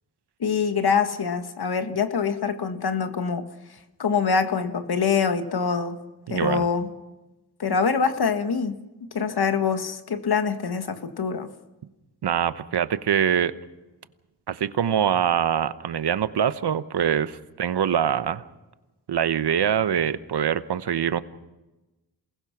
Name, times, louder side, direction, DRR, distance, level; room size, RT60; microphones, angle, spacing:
voice 1, 0.4-3.5 4.0-6.0 6.3-6.9 7.6-11.5, left 6 dB, 65° left, 8 dB, 1.8 m, -25 dB
voice 2, 6.3-6.7 12.2-13.5 14.5-18.4 19.1-21.2, right 8 dB, 75° right, 13 dB, 1.1 m, -24 dB
27.5 x 20.0 x 6.0 m, 1.1 s
cardioid pair, 60°, 41 cm